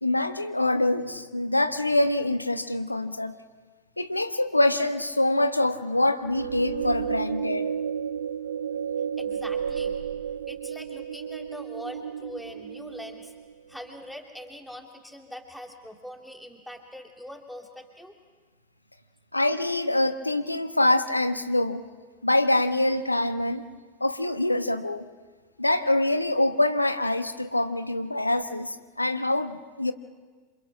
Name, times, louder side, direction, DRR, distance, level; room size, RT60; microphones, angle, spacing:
voice 1, 0.0-3.4 4.0-7.7 19.3-21.8 22.2-23.6 24.0-25.1 25.6-29.9, left 1 dB, 85° left, 10 dB, 1.2 m, -25 dB
sound 1, 6.2-13.6, right 7 dB, 65° right, 0.8 m, -32 dB
voice 2, 9.2-9.9 10.5-13.3 13.7-18.1, equal, ahead, 2 dB, 3.1 m, -42 dB
28.5 x 27.0 x 6.0 m, 1.4 s
figure-of-eight pair, 90°, 0 cm